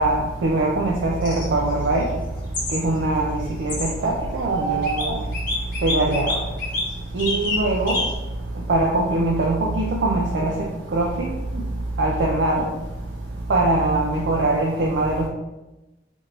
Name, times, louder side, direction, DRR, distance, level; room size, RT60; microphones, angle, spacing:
voice 1, 0.0-2.0 2.7-5.1 5.8-6.4 7.1-8.0 8.7-10.5 10.9-11.3 12.0-12.6 13.5-15.3, right 2 dB, 75° right, -2 dB, 0.4 m, -22 dB
sound 1, 1.2-1.4 2.5-2.8 3.7-3.9 4.8-5.1 5.3-6.8 7.2-7.6 7.9-8.2, left 3 dB, 50° left, 0.9 m, -26 dB
sound 2, 4.4-5.6 8.0-8.1 10.2-10.6 11.0-11.1 11.3-12.3, right 5 dB, ahead, 1.2 m, -30 dB
3.2 x 2.5 x 3.0 m, 1.0 s
head